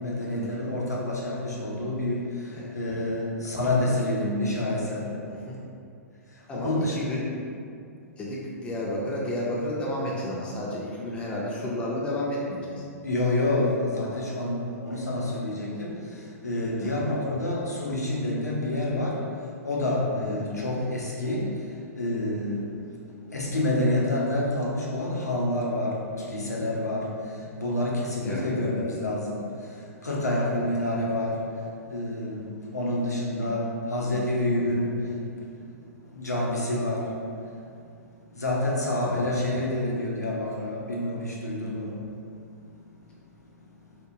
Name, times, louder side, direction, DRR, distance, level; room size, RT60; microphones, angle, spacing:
voice 1, 0.0-2.2 2.7-5.1 6.5-7.0 13.0-15.9 16.4-19.2 19.6-21.5 22.0-22.6 23.3-26.0 26.2-27.1 27.6-29.4 30.0-31.4 31.9-35.1 36.1-37.1 38.4-42.0, left 1 dB, 85° left, -3 dB, 0.5 m, -27 dB
voice 2, 5.3-5.6 6.5-7.2 7.5-7.6 8.2-12.8 16.8-17.1 20.2-20.4 28.2-28.4 30.7-30.9 34.6-34.8 39.1-39.2, left 1 dB, 15° left, -5 dB, 0.3 m, -32 dB
2.9 x 2.1 x 2.5 m, 2.4 s
figure-of-eight pair, 110°, 9 cm